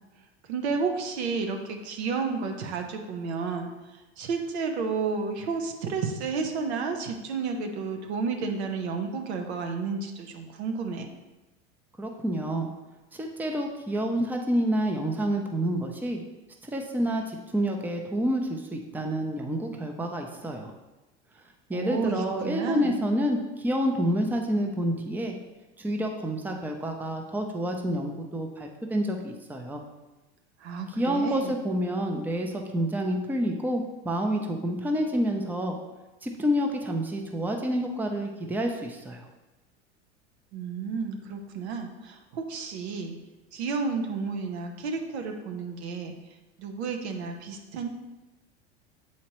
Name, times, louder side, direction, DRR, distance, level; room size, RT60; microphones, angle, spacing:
voice 1, 0.5-3.7 4.2-11.1 21.7-23.0 30.6-31.6 40.5-43.2 43.5-46.2 46.6-47.9, right 4 dB, 70° right, 4 dB, 0.9 m, -31 dB
voice 2, 12.0-12.7 13.1-16.2 16.6-20.7 21.7-25.3 25.8-29.8 30.9-35.7 36.2-39.3, equal, 5° right, 3 dB, 0.6 m, -28 dB
7.3 x 4.3 x 3.0 m, 1.1 s
hypercardioid pair, 85°, 34 cm